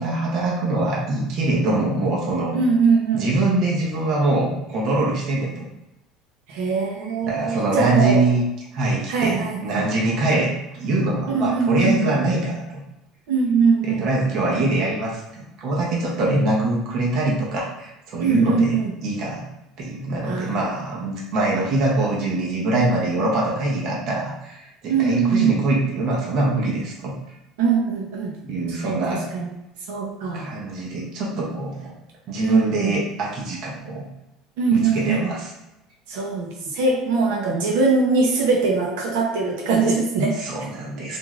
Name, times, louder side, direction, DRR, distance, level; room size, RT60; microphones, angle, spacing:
voice 1, 0.0-2.6 3.1-5.7 7.3-8.4 8.7-12.8 13.9-18.7 19.0-19.5 19.8-27.1 28.4-29.2 30.3-31.9 32.3-34.1 34.7-35.5 40.4-41.2, right 2 dB, 40° right, -3 dB, 0.7 m, -23 dB
voice 2, 2.5-3.3 6.5-8.3 9.1-9.9 11.3-12.2 13.3-14.1 18.2-18.9 20.2-20.7 24.9-25.6 27.6-28.3 28.8-29.5 29.9-30.5 32.4-33.0 34.6-35.3 36.1-40.4, right 4 dB, 80° right, -1 dB, 0.6 m, -21 dB
3.1 x 2.5 x 2.4 m, 0.91 s
cardioid pair, 180°, 0 cm